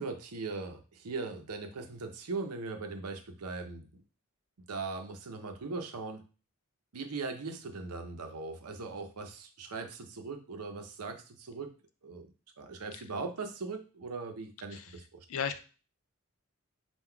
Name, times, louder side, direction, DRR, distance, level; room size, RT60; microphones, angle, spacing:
voice 1, 0.0-3.9 4.7-6.2 6.9-11.7 12.0-12.3 12.6-15.2, right 4 dB, 90° right, 5 dB, 0.7 m, -39 dB
voice 2, 15.3-15.6, left 7 dB, 65° left, 9 dB, 0.4 m, -35 dB
3.9 x 2.3 x 4.4 m, 0.36 s
head